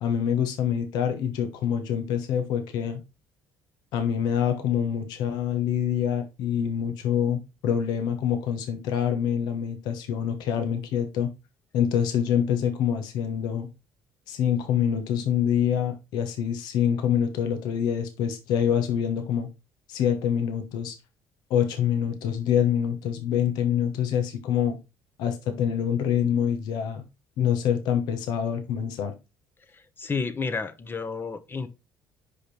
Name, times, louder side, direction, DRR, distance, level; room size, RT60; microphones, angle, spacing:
voice 1, 0.0-3.0 3.9-11.3 11.7-13.7 14.3-19.5 19.9-20.9 21.5-24.8 25.2-27.1 27.4-29.1, left 9 dB, 75° left, 1.1 m, -26 dB
voice 2, 29.7-31.7, left 4 dB, 30° left, 1.0 m, -31 dB
5.2 x 5.1 x 4.4 m
supercardioid pair, 75°, 7 cm